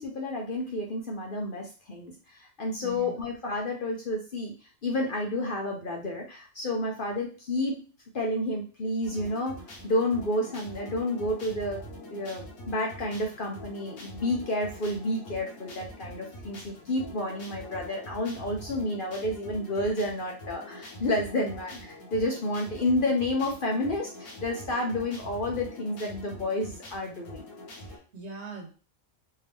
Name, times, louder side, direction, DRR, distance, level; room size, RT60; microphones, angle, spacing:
voice 1, 0.0-4.5 4.8-7.8 8.1-11.8 12.1-27.4, left 1 dB, 50° left, 0 dB, 0.7 m, -30 dB
voice 2, 2.8-3.1 27.8-28.7, right 2 dB, 60° right, 1 dB, 1.3 m, -41 dB
sound 1, 9.0-28.0, equal, 75° left, 1.5 m, -44 dB
3.6 x 2.7 x 3.4 m, 0.37 s
omnidirectional pair, 1.4 m